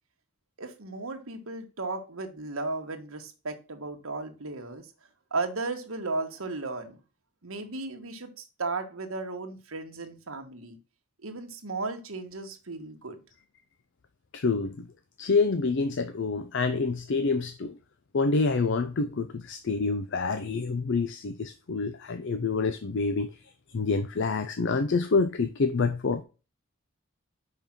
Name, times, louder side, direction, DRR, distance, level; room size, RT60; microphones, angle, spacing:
voice 1, 0.6-4.9 5.3-7.0 7.4-10.8 11.2-13.2, right 3 dB, 75° right, 1.5 m, -35 dB
voice 2, 14.3-14.8 15.2-17.8 18.1-23.3 23.7-26.2, left 4 dB, 55° left, 0.5 m, -27 dB
5.6 x 5.5 x 6.0 m
head